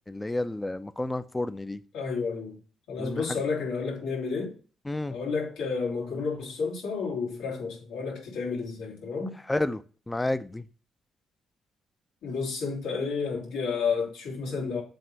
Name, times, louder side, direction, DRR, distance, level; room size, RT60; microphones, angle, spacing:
voice 1, 0.1-1.8 3.0-3.2 4.9-5.1 9.5-9.8 10.1-10.6, left 2 dB, 15° left, 0.5 m, -30 dB
voice 2, 1.9-2.6 2.9-4.6 5.1-9.4 12.2-14.8, left 5 dB, 85° left, 2.7 m, -31 dB
7.7 x 3.0 x 5.4 m
cardioid pair, 90°, 0 cm